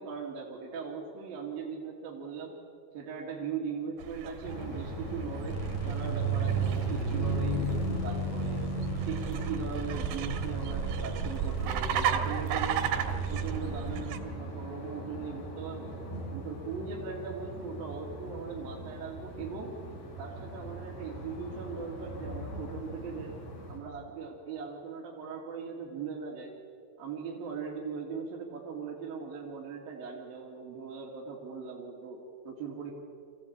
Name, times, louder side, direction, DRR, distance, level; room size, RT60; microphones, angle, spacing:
voice 1, 0.0-2.5 2.9-8.6 9.0-16.0 16.3-19.8 20.2-23.4 23.7-26.5 27.0-32.9, right 5 dB, 65° right, -3 dB, 3.8 m, -39 dB
sound 1, 4.0-14.2, right 9 dB, 90° right, 3.3 m, -36 dB
sound 2, 4.4-23.8, right 3 dB, 90° left, 6.0 m, -36 dB
sound 3, 5.5-13.5, left 2 dB, 55° left, 2.9 m, -42 dB
25.5 x 15.0 x 8.8 m, 2.2 s
omnidirectional pair, 4.6 m